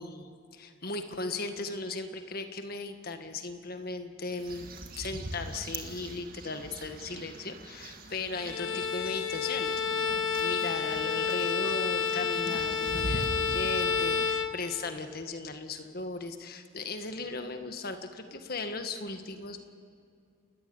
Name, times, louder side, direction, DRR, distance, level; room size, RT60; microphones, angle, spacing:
voice 1, 0.0-4.7 4.9-19.6, left 3 dB, 45° left, 7 dB, 1.7 m, -37 dB
sound 1, 4.3-14.2, right 1 dB, 45° right, 2.0 m, -42 dB
Bowed string instrument, 8.3-15.1, left 6 dB, 75° left, 1.4 m, -30 dB
29.0 x 14.5 x 9.6 m, 2.4 s
head